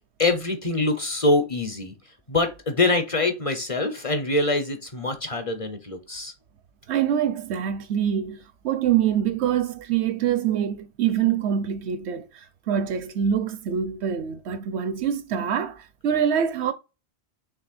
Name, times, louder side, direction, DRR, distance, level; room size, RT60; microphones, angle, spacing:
voice 1, 0.2-1.9 2.3-6.3, left 2 dB, 35° left, 0.8 m, -24 dB
voice 2, 6.9-8.4 8.6-16.7, right 9 dB, 80° right, 0.9 m, -25 dB
6.1 x 3.3 x 2.4 m
omnidirectional pair, 1.1 m